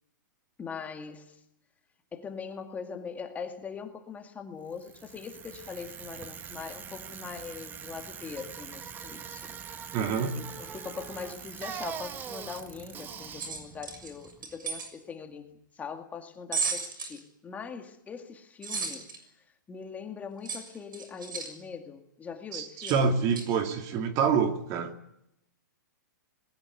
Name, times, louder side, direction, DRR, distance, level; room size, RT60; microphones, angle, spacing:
voice 1, 0.6-1.4 2.1-9.6 10.4-19.1 19.7-23.1, left 6 dB, 15° left, 2.1 m, -41 dB
Bicycle, 4.7-14.8, right 7 dB, 20° right, 1.3 m, -43 dB
voice 2, 9.9-10.4 22.5-24.9, right 6 dB, 35° right, 2.4 m, -27 dB
sound 1, 13.4-14.9 16.5-17.2 18.6-19.2 20.5-21.5 22.8-23.0 23.3-23.5, right 5 dB, 85° right, 6.7 m, -34 dB
20.5 x 18.5 x 9.7 m
hypercardioid pair, 140°, 11 cm